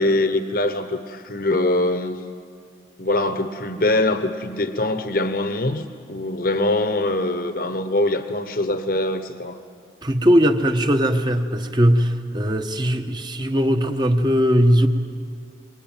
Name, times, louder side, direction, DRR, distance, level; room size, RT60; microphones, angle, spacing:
voice 1, 0.0-2.2 3.0-9.6, left 2 dB, 55° left, 9 dB, 1.2 m, -23 dB
voice 2, 10.0-14.9, equal, 25° right, 6 dB, 1.2 m, -19 dB
25.5 x 22.0 x 9.1 m, 2.2 s
head